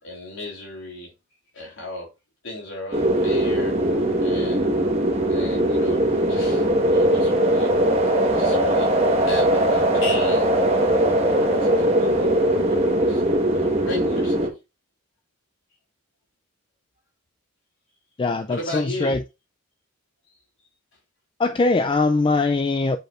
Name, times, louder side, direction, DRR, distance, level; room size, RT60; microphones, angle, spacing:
voice 1, 0.0-1.1 1.5-2.1 2.4-3.8 4.2-4.7 5.0-7.7 8.3-10.6 11.6-12.3 12.7-12.8 13.1-13.2 13.5-14.5 18.5-19.2, left 2 dB, 65° left, 3.6 m, -35 dB
sound 1, 2.9-14.5, right 1 dB, 30° right, 1.4 m, -20 dB
voice 2, 18.2-19.2 21.4-23.0, left 3 dB, 25° left, 0.3 m, -21 dB
8.0 x 5.2 x 2.5 m
head